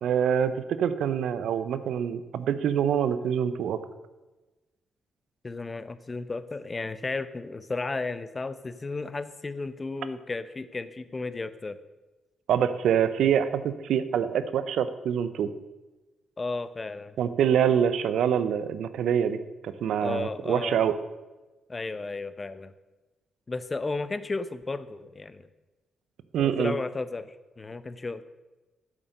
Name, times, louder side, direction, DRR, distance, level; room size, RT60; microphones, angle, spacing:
voice 1, 0.0-3.8 12.5-15.5 17.2-20.9 26.3-26.7, right 8 dB, 75° right, 13 dB, 0.6 m, -25 dB
voice 2, 5.4-11.8 16.4-17.1 20.0-20.8 21.7-22.7 23.5-25.5 26.4-28.2, left 3 dB, 35° left, 14 dB, 0.7 m, -34 dB
8.0 x 7.5 x 6.5 m, 1.1 s
supercardioid pair, 55°, 0 cm